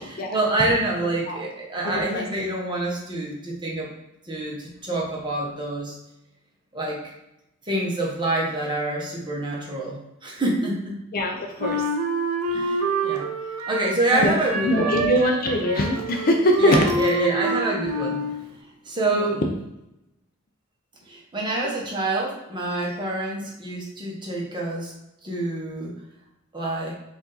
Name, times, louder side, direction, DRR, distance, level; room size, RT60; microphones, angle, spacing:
voice 1, 0.3-3.9 4.3-5.9 6.7-7.0 7.7-11.0 12.5-13.3 13.7-15.0 16.6-18.3 18.8-19.5 21.1-24.9 25.2-25.9 26.5-26.9, right 2 dB, 20° right, -3 dB, 1.1 m, -26 dB
voice 2, 1.8-2.2 11.1-11.8 14.1-16.8 19.1-19.3, left 1 dB, 40° left, 3 dB, 0.5 m, -22 dB
Wind instrument woodwind instrument, 11.6-14.0 14.3-18.4, right 2 dB, 85° right, 0.7 m, -27 dB
4.7 x 2.6 x 4.0 m, 0.88 s
head